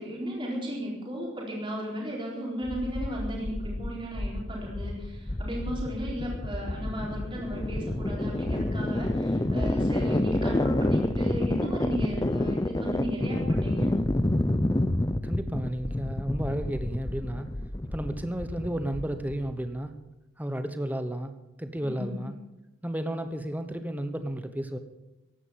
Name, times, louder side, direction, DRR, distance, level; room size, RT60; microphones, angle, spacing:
voice 1, 0.0-13.9 21.8-22.3, equal, 25° right, -2 dB, 4.0 m, -35 dB
sound 1, 2.6-19.7, left 1 dB, 15° left, 0.5 m, -29 dB
voice 2, 15.2-17.5 17.9-19.9 20.4-21.3 21.6-22.3 22.8-24.8, right 1 dB, 10° right, 9 dB, 1.1 m, -32 dB
15.5 x 11.0 x 7.2 m, 0.97 s
head